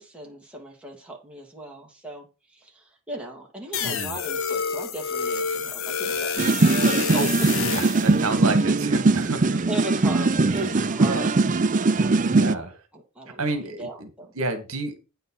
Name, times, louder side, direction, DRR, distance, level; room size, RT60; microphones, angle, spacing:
voice 1, 0.0-7.2 9.7-12.2 12.5-12.7 12.9-14.3, right 1 dB, 5° right, 2.3 m, -38 dB
sound 1, 3.7-8.1, left 6 dB, 60° left, 1.0 m, -28 dB
voice 2, 3.8-4.2 7.1-9.6 10.5-10.7 11.1-11.3 12.4-12.8 13.4-14.1 14.4-14.9, right 3 dB, 70° right, 1.7 m, -30 dB
sound 2, 6.4-12.5, right 3 dB, 35° right, 0.5 m, -21 dB
9.3 x 5.7 x 5.4 m
head